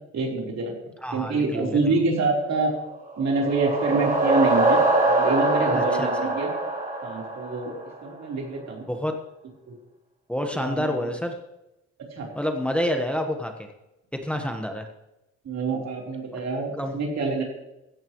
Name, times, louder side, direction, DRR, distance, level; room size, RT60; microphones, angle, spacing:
voice 1, 0.1-0.7 1.1-2.7 3.2-6.5 7.0-7.7 8.0-8.9 9.7-9.8 10.5-10.9 12.1-12.3 15.4-17.4, right 3 dB, 60° right, -1 dB, 4.0 m, -26 dB
voice 2, 1.0-1.9 5.7-6.3 8.9-9.1 10.3-11.4 12.3-13.7 14.1-14.9 16.8-16.9, equal, 5° left, 4 dB, 1.3 m, -28 dB
sound 1, 3.1-8.0, right 2 dB, 25° right, 3.6 m, -23 dB
16.0 x 14.0 x 3.1 m, 0.94 s
cardioid pair, 90°, 30 cm